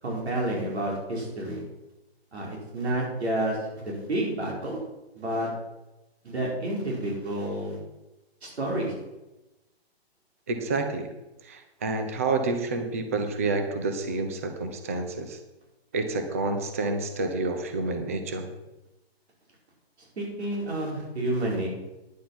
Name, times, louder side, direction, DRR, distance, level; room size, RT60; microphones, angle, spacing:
voice 1, 0.0-1.6 2.3-3.6 3.8-4.8 5.1-5.5 6.2-7.8 8.4-8.9 20.2-21.7, right 1 dB, 85° right, -2 dB, 5.1 m, -29 dB
voice 2, 10.5-11.1 11.4-15.4 15.9-18.5, right 3 dB, 15° right, 7 dB, 0.4 m, -29 dB
10.0 x 9.1 x 5.8 m, 1.0 s
hypercardioid pair, 165°, 32 cm